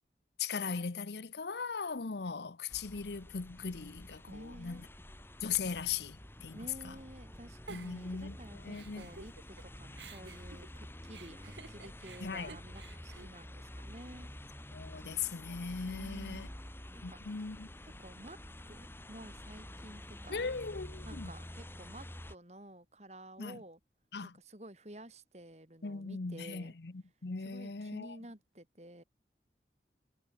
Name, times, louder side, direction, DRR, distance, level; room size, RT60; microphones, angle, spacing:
voice 1, 0.4-4.8 5.4-6.6 6.8-6.9 7.7-9.1 12.2-12.5 14.7-16.5 17.0-17.7 20.3-21.3 23.4-23.6 24.1-24.3 25.8-26.9 27.2-28.2, left 5 dB, 75° left, 0.8 m, -39 dB
sound 1, 2.7-22.4, left 1 dB, 15° left, 3.8 m, -49 dB
voice 2, 4.3-4.9 6.5-14.3 15.9-16.5 16.9-17.2 18.0-18.4 18.7-20.5 21.0-23.8 24.2-26.7 27.4-29.0, right 1 dB, 40° right, 4.0 m, -51 dB
Giggle, 7.7-9.6 9.9-14.2, right 4 dB, 90° right, 1.8 m, -53 dB
head